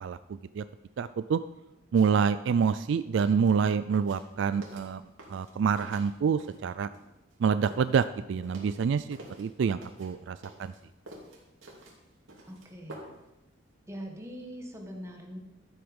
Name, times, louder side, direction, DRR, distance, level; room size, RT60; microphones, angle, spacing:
voice 1, 0.0-0.6 1.0-1.4 1.9-5.0 5.3-6.9 7.4-10.7, right 6 dB, 65° right, 14 dB, 0.3 m, -27 dB
sound 1, 2.0-2.2 2.6-6.7 6.9-9.5 9.8-13.3 13.6-13.7, right 1 dB, 80° right, 2.8 m, -49 dB
voice 2, 12.5-13.0 13.9-15.4, equal, 15° right, 1 dB, 1.6 m, -42 dB
12.5 x 7.9 x 5.3 m, 0.97 s
head